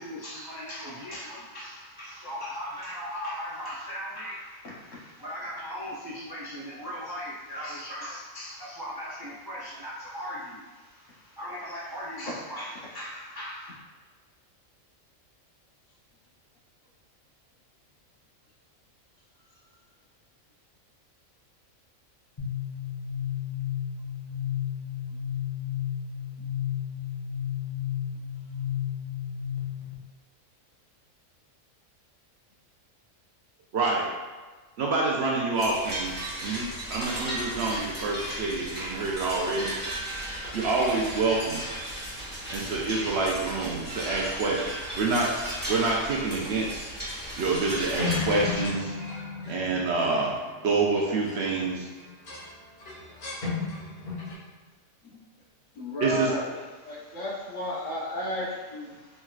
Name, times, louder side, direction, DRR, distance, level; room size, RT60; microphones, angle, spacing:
voice 1, 0.0-13.7 56.9-57.2 58.9-59.2, equal, 35° right, -8 dB, 0.4 m, -38 dB
voice 2, 4.6-5.1 12.3-12.4 55.0-55.2 55.7-56.5 56.8-59.0, left 1 dB, 70° left, -5 dB, 1.3 m, -33 dB
sound 1, 22.4-29.9, left 9 dB, 25° left, 1.0 m, -32 dB
voice 3, 33.7-34.1 34.8-36.2 36.4-39.8 40.5-41.6 42.5-45.3 45.7-46.9 47.4-48.9 49.5-50.4 50.6-51.9 56.0-56.3, right 3 dB, 65° right, -2 dB, 0.7 m, -27 dB
sound 2, 35.5-48.7, right 1 dB, 10° right, 1.0 m, -35 dB
sound 3, 47.7-51.6 52.0-52.5 52.8-54.3, left 4 dB, 50° left, 1.3 m, -34 dB
4.4 x 3.1 x 2.3 m, 1.3 s
omnidirectional pair, 1.4 m